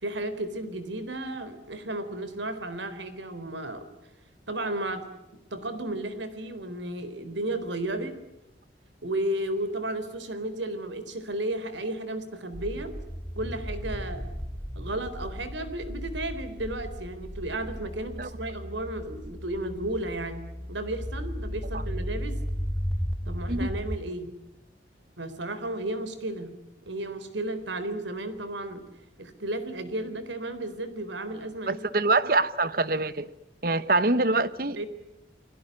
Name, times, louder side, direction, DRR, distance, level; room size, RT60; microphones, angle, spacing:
voice 1, 0.0-3.9 4.5-5.1 5.5-8.2 9.0-12.9 13.4-14.3 14.8-22.4 23.3-24.3 25.2-26.6 26.9-28.8 29.2-32.3 34.8-34.9, right 1 dB, 90° right, 12 dB, 4.1 m, -33 dB
sound 1, 12.5-24.0, equal, 5° left, 1.6 m, -35 dB
voice 2, 31.7-33.3 33.6-34.9, right 2 dB, 50° right, 15 dB, 1.2 m, -25 dB
29.5 x 20.5 x 9.7 m, 0.92 s
head